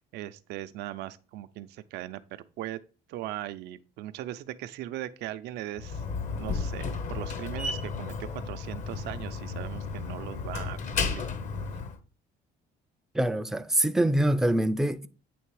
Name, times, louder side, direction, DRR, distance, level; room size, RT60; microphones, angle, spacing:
voice 1, 0.0-2.8 3.1-6.0 6.4-11.3, right 14 dB, 80° right, 0.5 m, -39 dB
Slam, 5.8-12.0, left 4 dB, 45° left, 0.9 m, -33 dB
voice 2, 13.1-15.1, right 1 dB, 5° right, 0.4 m, -24 dB
8.6 x 3.3 x 4.7 m
cardioid pair, 110°, 17 cm